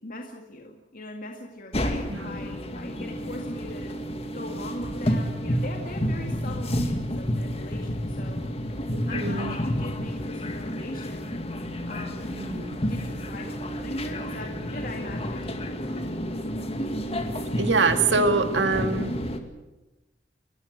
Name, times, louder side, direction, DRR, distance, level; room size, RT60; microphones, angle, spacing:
voice 1, 0.0-4.0 4.3-8.4 9.1-11.3 11.9-16.0, left 1 dB, 50° left, 2 dB, 2.1 m, -40 dB
sound 1, 1.7-19.4, equal, 35° left, 2.1 m, -30 dB
voice 2, 8.9-9.6 12.3-12.8 17.6-19.2, right 3 dB, 85° right, 8 dB, 1.9 m, -25 dB
29.5 x 15.0 x 8.0 m, 1.0 s
head